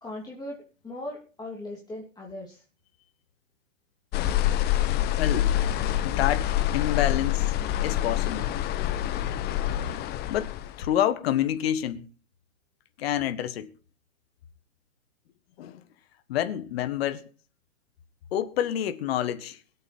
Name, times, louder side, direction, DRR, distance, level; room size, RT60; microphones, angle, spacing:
voice 1, 0.0-2.6, left 1 dB, 10° left, 3.0 m, -39 dB
sound 1, 4.1-10.9, left 12 dB, 25° left, 1.0 m, -26 dB
voice 2, 5.2-5.5 6.0-7.6 7.8-8.5 10.3-10.5 10.8-12.1 13.0-13.7 15.6-15.8 16.3-17.3 18.3-19.6, left 11 dB, 50° left, 1.6 m, -28 dB
23.0 x 8.4 x 4.4 m
figure-of-eight pair, 110°, 38 cm